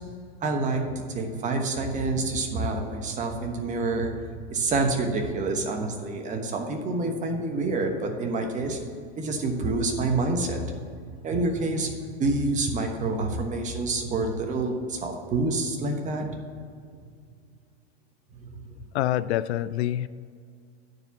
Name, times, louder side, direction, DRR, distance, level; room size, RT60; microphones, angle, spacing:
voice 1, 0.4-8.8 9.2-10.6 11.2-16.3 18.4-18.7, right 3 dB, 25° right, 4 dB, 1.1 m, -27 dB
voice 2, 18.9-20.1, left 13 dB, 80° left, 16 dB, 0.5 m, -26 dB
9.7 x 4.8 x 6.9 m, 2.2 s
supercardioid pair, 135°, 32 cm